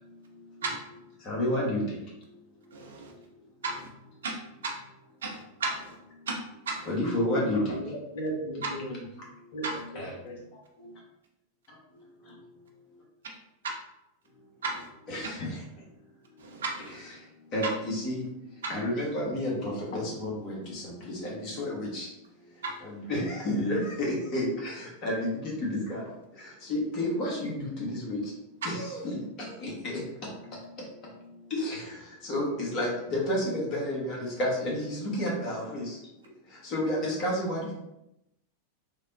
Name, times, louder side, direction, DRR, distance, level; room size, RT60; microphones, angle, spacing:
voice 1, 1.3-1.8 6.9-7.8 9.9-10.1 15.1-15.6 16.9-17.1 17.5-18.2 18.7-22.1 22.8-26.0 26.6-28.2 28.6-29.2 29.6-29.7 31.5-31.8 32.2-36.0 36.6-37.7, left 1 dB, 40° left, -3 dB, 1.0 m, -30 dB
voice 2, 2.7-3.1 3.6-3.9 4.2-4.3 4.6-4.7 5.2-5.9 6.3-6.4 6.7-6.9 8.6-8.7 9.6-9.8 14.6-14.9 16.4-17.0 18.6-18.7, right 3 dB, 65° right, 1 dB, 0.5 m, -33 dB
voice 3, 7.5-9.0 9.5-9.6 9.9-10.4, right 1 dB, 60° left, -1 dB, 0.6 m, -36 dB
3.4 x 2.0 x 2.6 m, 0.87 s
figure-of-eight pair, 90°, 0 cm